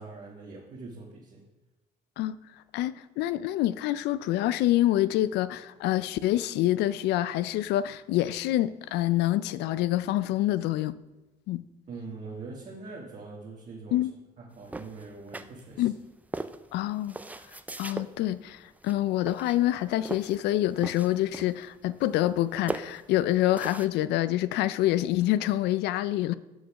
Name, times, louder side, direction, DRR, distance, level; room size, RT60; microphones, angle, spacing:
voice 1, 0.0-1.4 11.9-14.1 14.4-15.9, right 3 dB, 45° right, 1.6 m, -43 dB
voice 2, 2.7-10.9 11.5-11.6 13.9-14.1 15.8-15.9 16.7-17.1 17.8-26.3, left 14 dB, 85° left, 0.4 m, -26 dB
sound 1, 14.7-15.9 16.3-18.1 18.8-19.0 19.3-20.4 20.7-21.7 22.0-22.4 22.7-23.9, right 2 dB, 10° right, 0.4 m, -38 dB
6.5 x 6.3 x 5.9 m
cardioid pair, 110°, 17 cm